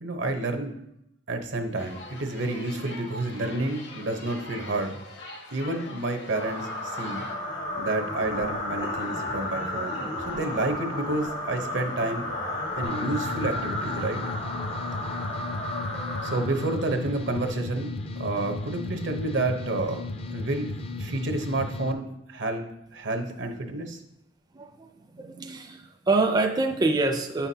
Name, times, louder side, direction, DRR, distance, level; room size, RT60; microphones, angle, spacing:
voice 1, 0.0-0.7 1.3-5.0 5.5-7.2 7.8-10.0 10.3-12.3 12.8-14.2 16.2-20.0 20.3-20.7 21.0-22.6 22.9-24.0, right 2 dB, 80° right, 5 dB, 0.9 m, -29 dB
sound 1, 1.7-7.3, left 2 dB, 75° left, 1.4 m, -44 dB
sound 2, 6.3-17.1, left 1 dB, 90° left, 2.0 m, -33 dB
sound 3, 12.8-21.9, left 3 dB, 35° left, 0.4 m, -35 dB
voice 2, 24.5-24.9 25.1-27.5, right 3 dB, 20° right, 4 dB, 0.4 m, -25 dB
9.3 x 5.7 x 2.8 m, 0.79 s
head